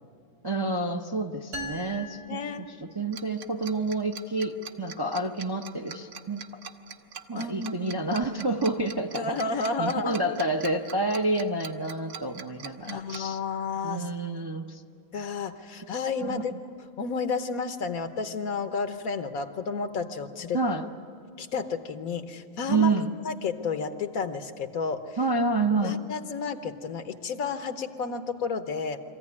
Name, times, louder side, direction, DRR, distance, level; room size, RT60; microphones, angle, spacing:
voice 1, 0.4-2.4 2.8-6.4 7.3-13.4 13.8-14.8 16.2-16.4 20.5-20.9 22.7-23.1 25.2-26.0, right 2 dB, 30° right, 2 dB, 0.4 m, -28 dB
sound 1, 1.5-3.3, left 1 dB, 85° right, 2.1 m, -40 dB
voice 2, 2.3-2.7 7.3-7.9 9.1-10.2 12.8-14.1 15.1-16.5 17.0-20.6 21.4-22.9 23.2-25.2 25.8-29.0, left 4 dB, 80° left, 8 dB, 1.4 m, -31 dB
Tick-tock, 3.1-13.2, right 7 dB, 65° right, 1.2 m, -42 dB
23.5 x 15.0 x 9.7 m, 2.5 s
omnidirectional pair, 1.5 m